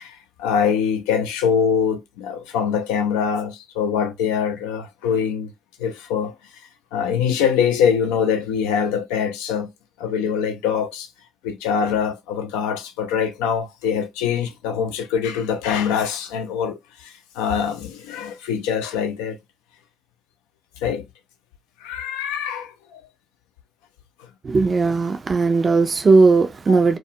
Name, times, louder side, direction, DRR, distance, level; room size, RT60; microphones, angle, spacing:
voice 1, 0.0-5.5 5.8-6.3 6.9-9.7 10.0-11.1 11.4-19.4 20.8-21.1 21.8-23.0 26.7-26.8, left 7 dB, 80° left, 0.4 m, -23 dB
voice 2, 24.4-27.0, right 4 dB, 40° right, 0.4 m, -17 dB
2.2 x 2.0 x 2.7 m
hypercardioid pair, 45°, 0 cm